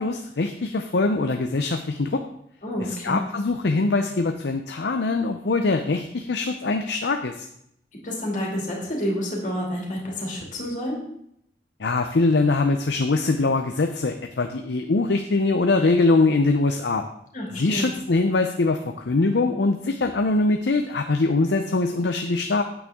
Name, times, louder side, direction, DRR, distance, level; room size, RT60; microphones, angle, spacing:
voice 1, 0.0-2.2 3.0-7.4 11.8-17.0 17.6-22.6, left 3 dB, 70° left, 6 dB, 0.6 m, -22 dB
voice 2, 2.6-3.2 8.0-11.0 17.3-17.9, equal, 45° left, -2 dB, 2.5 m, -29 dB
8.6 x 8.6 x 3.6 m, 0.74 s
head